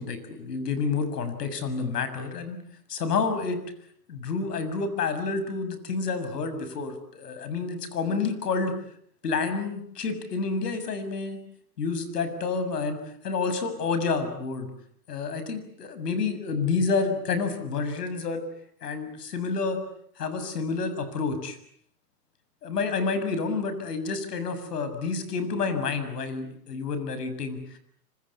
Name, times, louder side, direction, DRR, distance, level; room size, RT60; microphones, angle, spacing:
voice 1, 0.0-2.6 2.9-3.6 4.1-8.7 9.2-11.4 11.8-13.0 13.2-14.7 15.1-18.4 18.8-19.8 20.2-21.6 22.6-27.8, left 4 dB, 80° left, 11 dB, 6.9 m, -29 dB
27.0 x 26.0 x 8.4 m, 0.65 s
hypercardioid pair, 155°, 47 cm